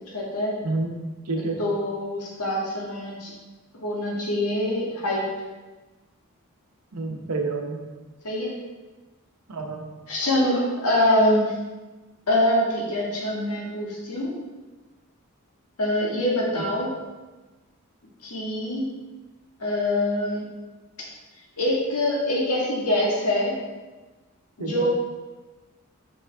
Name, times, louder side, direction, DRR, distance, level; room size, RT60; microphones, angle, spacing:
voice 1, 0.1-0.6 1.6-3.3 3.8-5.3 8.2-8.6 10.1-11.6 12.3-14.4 15.8-16.9 18.2-18.9 19.6-20.5 21.6-23.6 24.6-24.9, left 1 dB, 90° left, -3 dB, 1.7 m, -24 dB
voice 2, 1.3-1.6 6.9-7.8 9.5-9.8 16.6-16.7 24.6-24.8, right 3 dB, 90° right, 2 dB, 0.9 m, -28 dB
6.1 x 5.3 x 3.5 m, 1.2 s
head